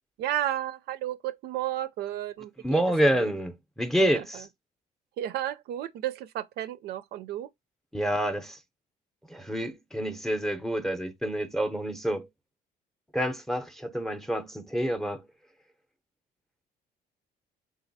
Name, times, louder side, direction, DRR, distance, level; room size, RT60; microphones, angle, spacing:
voice 1, 0.2-3.3 4.1-4.4 5.2-7.5, right 12 dB, 70° right, 0.4 m, -33 dB
voice 2, 2.6-4.5 7.9-8.6 9.3-12.3 13.1-15.2, equal, ahead, 0.6 m, -28 dB
4.0 x 3.8 x 2.6 m
cardioid pair, 110°, 17 cm